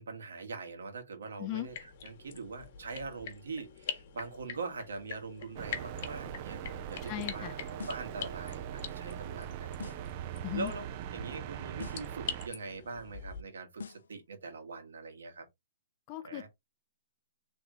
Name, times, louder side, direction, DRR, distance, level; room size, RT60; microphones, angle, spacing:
voice 1, 0.0-1.7 2.0-6.6 6.9-9.9 10.5-10.9 11.1-15.4 16.2-16.5, right 4 dB, 85° right, 1.6 m, -42 dB
sound 1, 1.6-13.4, left 7 dB, 45° left, 1.1 m, -45 dB
sound 2, 5.6-12.5, right 11 dB, 35° right, 0.3 m, -41 dB
voice 2, 7.0-7.5 10.4-10.7 16.1-16.5, left 17 dB, 30° left, 0.5 m, -37 dB
sound 3, 7.8-8.2 9.8-10.2 11.8-12.2 13.8-14.2, left 5 dB, 90° left, 0.5 m, -45 dB
3.5 x 3.1 x 3.6 m
hypercardioid pair, 160°, 0 cm